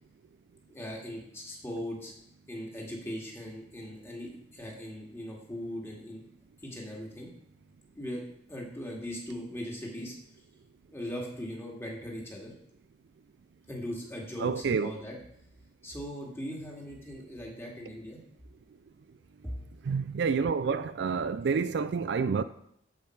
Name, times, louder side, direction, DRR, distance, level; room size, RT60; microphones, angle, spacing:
voice 1, 0.7-2.1 2.5-6.3 6.6-7.3 8.0-8.2 8.5-10.1 10.9-12.5 13.7-15.2 15.8-18.2 19.4-19.6, equal, 15° left, 2.1 m, -39 dB
voice 2, 14.4-14.9 19.8-22.4, right 5 dB, 60° right, 0.3 m, -28 dB
13.5 x 5.2 x 4.6 m
head